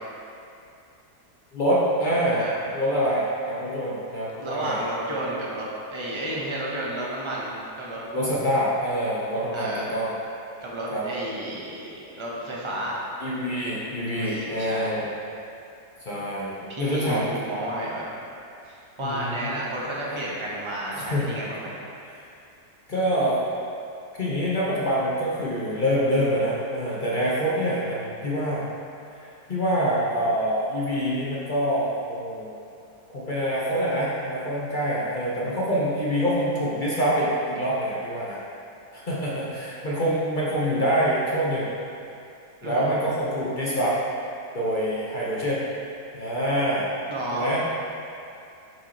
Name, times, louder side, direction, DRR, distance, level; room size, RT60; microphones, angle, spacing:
voice 1, 1.5-2.5 2.7-4.8 8.1-10.1 10.9-11.0 13.2-15.1 16.0-17.4 19.0-19.6 20.1-20.2 20.9-21.3 22.9-23.5 24.2-28.6 29.2-32.6 33.1-38.4 38.9-41.7 42.6-44.0 44.5-45.6 46.1-46.9 47.3-47.6, equal, 45° left, -7 dB, 0.7 m, -25 dB
voice 2, 2.3-2.7 4.4-8.0 9.5-10.0 10.6-13.0 14.0-14.9 16.7-18.1 18.6-21.9 42.6-42.9 47.1-47.6, right 1 dB, 25° right, -5 dB, 0.6 m, -32 dB
7.6 x 4.6 x 2.9 m, 2.5 s
omnidirectional pair, 1.7 m